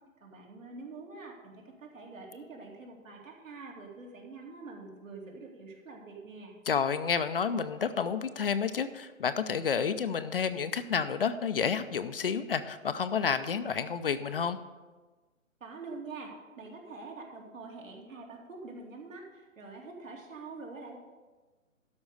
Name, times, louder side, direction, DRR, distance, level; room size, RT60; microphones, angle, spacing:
voice 1, 0.2-6.6 15.6-21.0, right 3 dB, 70° right, 0 dB, 2.6 m, -45 dB
voice 2, 6.7-14.6, left 6 dB, 45° left, 11 dB, 0.5 m, -30 dB
12.5 x 5.2 x 6.5 m, 1.3 s
hypercardioid pair, 145°, 40 cm